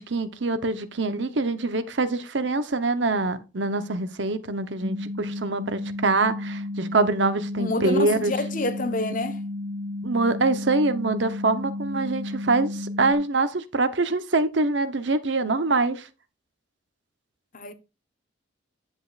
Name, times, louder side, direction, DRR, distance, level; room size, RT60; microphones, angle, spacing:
voice 1, 0.0-8.3 10.0-16.1, right 3 dB, 65° right, 0.9 m, -24 dB
sound 1, 4.8-13.1, left 2 dB, 25° right, 1.1 m, -33 dB
voice 2, 7.6-9.4 17.5-17.7, left 2 dB, 45° left, 1.0 m, -28 dB
10.0 x 8.0 x 2.5 m
head